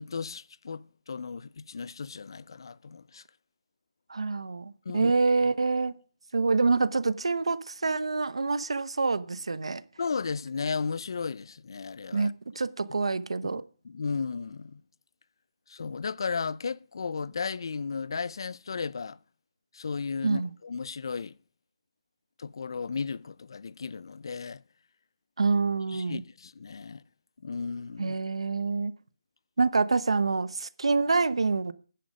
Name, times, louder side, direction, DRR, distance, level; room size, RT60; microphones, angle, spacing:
voice 1, 0.0-3.2 4.9-5.1 10.0-12.3 13.8-14.8 15.7-19.2 19.7-21.4 22.4-24.6 25.9-27.0 27.4-28.2, left 5 dB, 55° left, 0.5 m, -34 dB
voice 2, 4.1-5.9 6.3-9.8 12.1-13.6 20.2-20.5 25.4-26.2 28.0-28.9 29.6-31.7, right 4 dB, 90° right, 0.9 m, -26 dB
10.5 x 10.0 x 5.0 m
hypercardioid pair, 170°, 3 cm